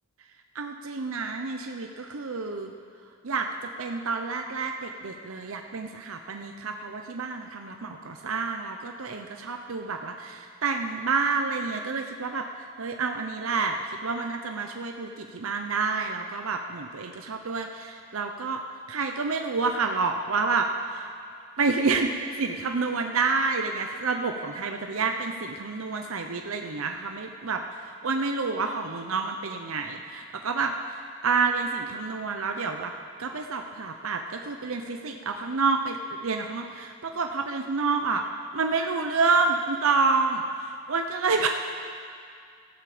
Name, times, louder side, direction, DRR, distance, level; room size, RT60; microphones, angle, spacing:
voice 1, 0.5-2.7 3.2-18.6 18.9-21.1 21.6-32.9 33.2-38.2 38.5-41.5, right 4 dB, 65° right, 4 dB, 0.7 m, -29 dB
17.0 x 13.5 x 5.0 m, 2.3 s
head